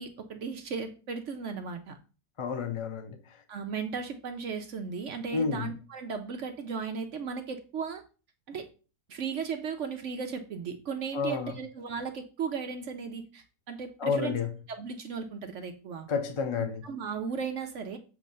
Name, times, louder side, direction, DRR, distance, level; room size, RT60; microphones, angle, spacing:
voice 1, 0.0-2.0 3.5-8.0 8.5-8.7 9.1-14.4 14.7-16.1 16.6-18.0, right 5 dB, 60° right, 0.9 m, -36 dB
voice 2, 2.4-3.2 5.3-5.7 11.1-11.5 14.0-14.5 16.1-16.8, left 5 dB, 40° left, 0.4 m, -30 dB
7.3 x 3.1 x 5.3 m
omnidirectional pair, 1.7 m